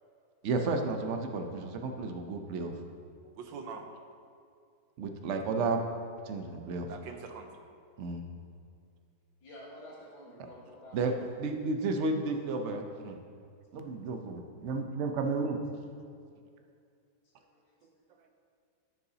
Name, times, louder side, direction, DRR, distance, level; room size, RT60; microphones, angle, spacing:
voice 1, 0.4-2.7 5.0-5.8 6.3-6.9 8.0-8.2 10.9-11.1 11.4-13.2 13.7-15.6, right 3 dB, 65° right, 4 dB, 0.7 m, -32 dB
voice 2, 3.2-3.9 6.6-7.5 17.8-17.9 18.2-18.3, right 5 dB, 80° right, 4 dB, 1.5 m, -44 dB
voice 3, 9.4-11.1 17.6-18.1, equal, 80° left, -5 dB, 2.4 m, -50 dB
13.5 x 6.8 x 2.8 m, 2.3 s
omnidirectional pair, 2.1 m